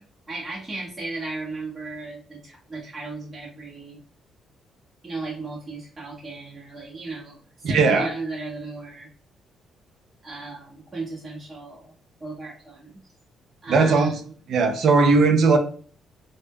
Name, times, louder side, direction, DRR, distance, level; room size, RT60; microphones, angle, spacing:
voice 1, 0.3-4.0 5.0-9.1 10.2-11.9 12.2-13.0 13.6-14.2, right 3 dB, 30° right, -5 dB, 0.8 m, -35 dB
voice 2, 7.6-8.1 13.7-14.2 14.5-15.6, right 4 dB, 65° right, 6 dB, 0.4 m, -18 dB
2.1 x 2.0 x 3.3 m, 0.43 s
cardioid pair, 90°, 0 cm